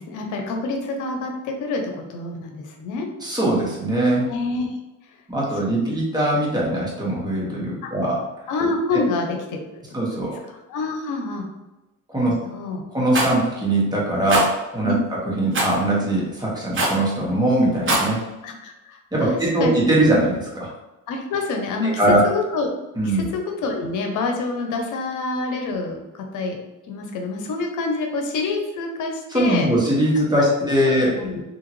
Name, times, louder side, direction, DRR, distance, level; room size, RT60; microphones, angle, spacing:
voice 1, 0.0-3.1 4.3-4.8 7.8-7.9 8.5-9.8 10.3-11.5 12.2-12.8 14.8-15.0 18.4-19.8 21.1-21.9 22.2-22.7 23.0-26.6 26.9-29.7 31.1-31.4, left 3 dB, 85° left, 3 dB, 0.7 m, -27 dB
voice 2, 3.2-4.3 5.3-8.2 9.9-10.4 12.1-12.3 12.9-18.2 19.1-20.7 22.0-22.2 23.0-23.3 29.3-31.2, right 1 dB, 15° right, -5 dB, 1.4 m, -21 dB
Rattle, 13.1-13.3 14.3-14.5 15.5-15.8 16.7-17.0 17.7-18.1, right 2 dB, 40° right, 1.3 m, -21 dB
3.7 x 2.8 x 3.1 m, 1.0 s
cardioid pair, 90°, 30 cm